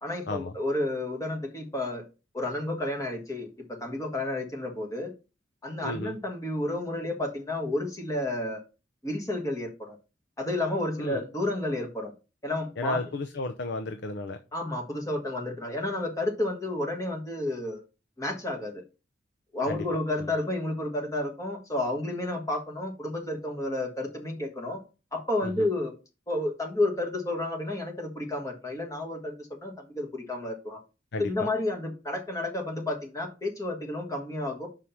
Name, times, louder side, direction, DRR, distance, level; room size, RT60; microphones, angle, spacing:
voice 1, 0.0-2.0 2.3-5.1 5.6-8.6 9.0-10.0 10.4-12.1 12.4-13.0 14.5-17.8 18.2-18.8 19.5-24.8 25.1-25.9 26.3-30.8 31.2-34.7, left 1 dB, 20° left, 1.5 m, -31 dB
voice 2, 5.8-6.2 11.0-11.2 12.8-14.4 19.7-19.8 20.2-20.3 25.4-25.7 31.1-31.5, left 2 dB, 65° left, 0.6 m, -33 dB
5.7 x 4.8 x 5.7 m
head